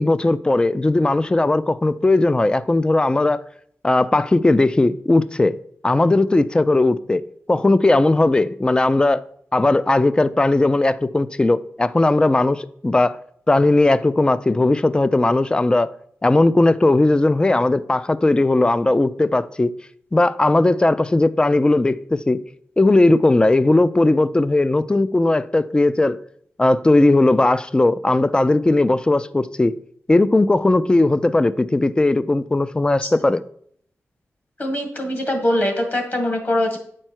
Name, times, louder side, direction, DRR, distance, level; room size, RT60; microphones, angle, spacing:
voice 1, 0.0-3.4 3.8-5.5 5.8-7.2 7.5-9.2 9.5-13.2 13.5-15.9 16.2-19.7 20.1-22.4 22.8-26.2 26.6-29.8 30.1-33.4, left 2 dB, 15° left, 0.3 m, -17 dB
voice 2, 34.6-36.8, left 1 dB, 40° left, 1.6 m, -22 dB
8.6 x 4.5 x 4.5 m
wide cardioid pair, 120°, 5 cm